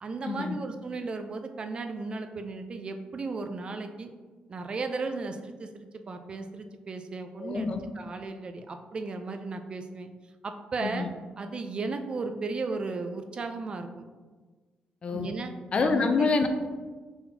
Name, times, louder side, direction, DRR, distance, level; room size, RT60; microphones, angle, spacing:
voice 1, 0.0-4.1 4.5-7.7 8.0-10.1 10.4-11.1 11.4-14.1 15.1-15.5 15.8-16.3, right 3 dB, 35° right, 7 dB, 0.3 m, -35 dB
voice 2, 7.4-7.8 10.8-11.1 15.0-15.3 15.7-16.5, left 4 dB, 40° left, 7 dB, 0.4 m, -26 dB
4.2 x 3.9 x 2.7 m, 1.4 s
cardioid pair, 120°, 3 cm